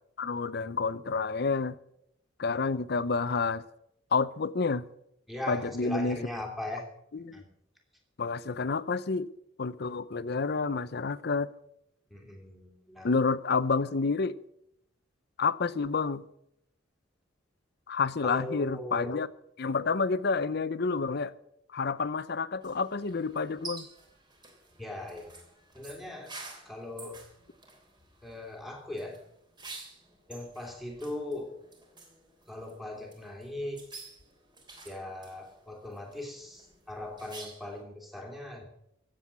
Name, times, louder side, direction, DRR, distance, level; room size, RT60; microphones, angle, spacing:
voice 1, 0.2-1.8 2.4-3.6 4.1-4.9 5.5-6.2 7.1-7.4 8.2-9.3 9.6-11.5 13.0-14.4 15.4-16.2 17.9-19.3 19.6-21.3 21.7-23.9, left 4 dB, 55° left, 0.6 m, -29 dB
voice 2, 5.3-6.8 7.3-7.5 12.1-13.2 18.2-19.1 24.8-25.3 25.7-26.3 26.6-27.2 28.2-29.2 30.3-31.5 32.5-33.8 34.8-38.6, left 1 dB, ahead, 2.8 m, -39 dB
sound 1, 22.6-37.8, right 3 dB, 25° right, 3.4 m, -50 dB
15.5 x 7.7 x 8.5 m
head